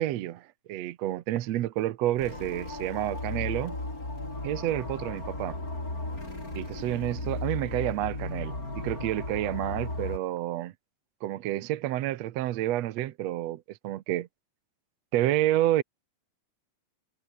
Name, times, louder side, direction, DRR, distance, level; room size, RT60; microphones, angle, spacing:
voice 1, 0.0-3.8 4.4-5.6 6.6-10.7 11.2-14.3 15.1-15.8, right 14 dB, 70° right, 1.7 m, -29 dB
sound 1, 2.2-10.2, left 2 dB, 25° left, 6.9 m, -35 dB
omnidirectional pair, 3.9 m